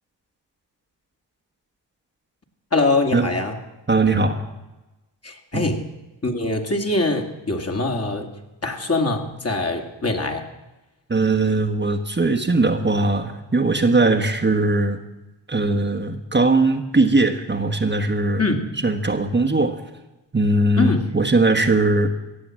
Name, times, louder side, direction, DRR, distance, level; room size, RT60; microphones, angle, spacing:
voice 1, 2.7-3.6 5.2-5.8 6.2-8.3 8.6-10.4 18.4-18.7 20.8-21.1, left 2 dB, 30° left, 3 dB, 2.2 m, -23 dB
voice 2, 3.9-4.4 5.5-5.7 11.1-15.0 15.5-18.4 18.8-19.8 20.3-22.1, right 2 dB, 25° right, 2 dB, 1.4 m, -20 dB
16.5 x 7.5 x 7.5 m, 1.0 s
supercardioid pair, 55°, 45 cm